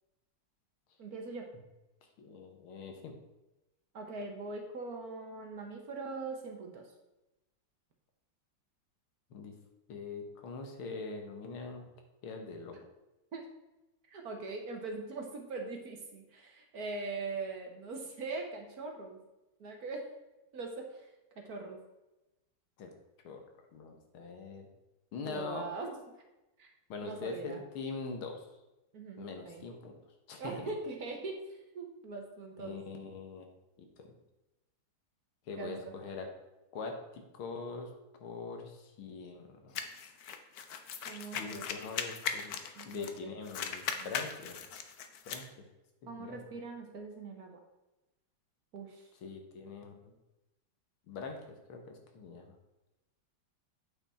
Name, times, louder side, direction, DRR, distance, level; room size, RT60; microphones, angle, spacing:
voice 1, 1.0-1.4 3.9-6.9 13.3-13.4 14.1-19.2 19.6-20.1 20.5-21.1 21.4-21.8 25.3-26.0 26.6-26.7 27.0-27.6 28.9-29.6 30.4-32.8 35.6-35.8 41.0-41.6 42.8-43.3 44.0-44.1 46.1-47.6 48.7-49.1, right 3 dB, 55° right, 2 dB, 1.4 m, -41 dB
voice 2, 2.2-3.1 9.3-9.6 9.9-11.8 12.2-12.8 22.8-22.9 23.2-23.4 23.7-24.7 25.1-25.7 26.9-28.5 29.2-30.0 30.3-30.7 32.6-33.5 33.8-34.1 35.5-36.3 36.7-37.9 38.2-39.9 41.3-42.6 42.8-44.6 45.3-45.7 46.0-46.4 49.2-50.1 51.1-52.5, left 4 dB, 85° left, 4 dB, 2.1 m, -43 dB
sound 1, 39.7-43.2 43.4-45.5, left 7 dB, 65° left, 1.0 m, -39 dB
8.8 x 5.9 x 4.3 m, 1.0 s
omnidirectional pair, 2.3 m